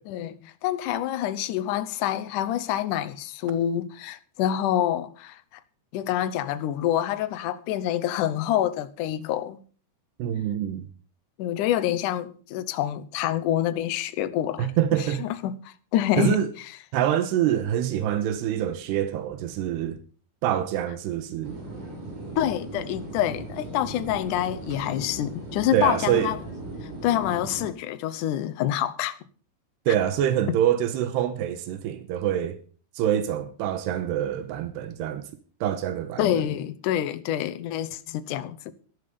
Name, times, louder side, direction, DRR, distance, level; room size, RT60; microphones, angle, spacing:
voice 1, 0.1-5.4 5.9-9.6 11.4-16.4 22.4-26.4 26.8-29.2 36.2-38.7, left 11 dB, 75° left, 1.9 m, -27 dB
voice 2, 10.2-10.9 14.6-15.2 16.2-16.5 16.9-20.0 20.4-21.6 25.7-26.3 29.9-32.6 33.0-35.2 35.6-36.4, right 10 dB, 85° right, 3.2 m, -25 dB
sound 1, 21.4-27.7, right 1 dB, 50° right, 4.4 m, -38 dB
12.5 x 12.5 x 5.2 m
omnidirectional pair, 4.6 m